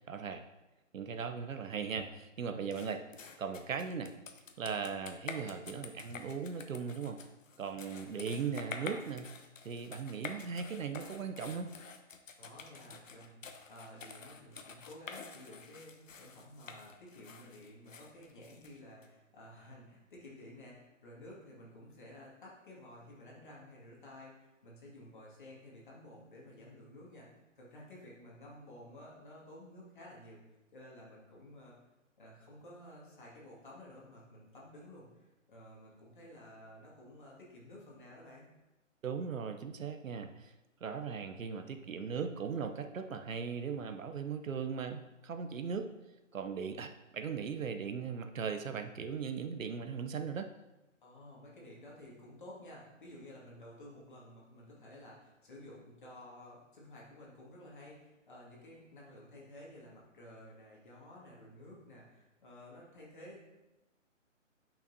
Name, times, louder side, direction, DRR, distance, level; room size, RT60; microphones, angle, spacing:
voice 1, 0.1-0.4 0.9-3.0 3.4-4.1 4.6-7.2 7.6-9.3 9.6-11.7 39.0-40.5 40.8-45.9 46.3-50.5, right 6 dB, 80° right, 7 dB, 0.8 m, -38 dB
sound 1, 2.7-19.1, left 5 dB, 75° left, 0.9 m, -48 dB
voice 2, 12.4-27.3 27.6-30.4 30.7-31.7 32.2-38.4 51.0-63.5, left 1 dB, 40° left, -5 dB, 2.1 m, -53 dB
9.0 x 5.7 x 2.7 m, 1.0 s
hypercardioid pair, 175°, 39 cm